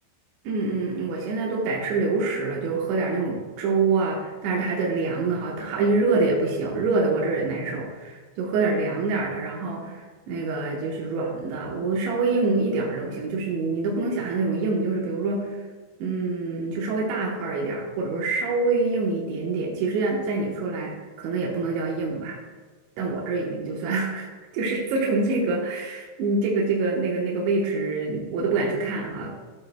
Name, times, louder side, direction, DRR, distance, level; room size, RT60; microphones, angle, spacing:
voice 1, 0.4-15.6 16.0-22.4 23.0-29.3, right 3 dB, 75° right, -3 dB, 3.3 m, -26 dB
14.0 x 8.5 x 2.2 m, 1.4 s
omnidirectional pair, 5.3 m